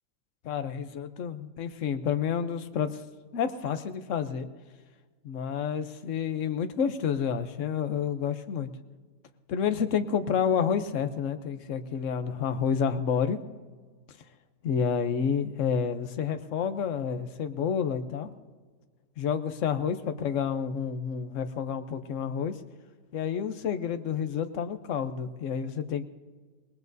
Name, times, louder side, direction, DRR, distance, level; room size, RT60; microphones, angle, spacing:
voice 1, 0.4-3.0 3.3-4.5 5.2-8.7 9.5-13.4 14.6-18.3 19.2-22.6 23.1-26.0, left 7 dB, 55° left, 9 dB, 1.1 m, -29 dB
26.0 x 20.0 x 2.7 m, 1.5 s
omnidirectional pair, 1.7 m